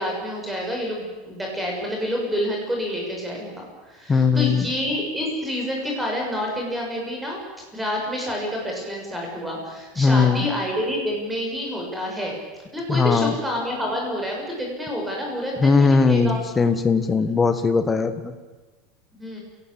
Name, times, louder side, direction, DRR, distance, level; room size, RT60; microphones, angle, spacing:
voice 1, 0.0-7.4 7.7-12.3 12.7-16.4 19.1-19.4, equal, 5° right, -1 dB, 6.9 m, -28 dB
voice 2, 4.1-4.7 10.0-10.5 12.9-13.3 15.6-18.3, left 4 dB, 15° left, 8 dB, 1.7 m, -19 dB
27.0 x 18.5 x 8.8 m, 1.2 s
supercardioid pair, 165°, 0 cm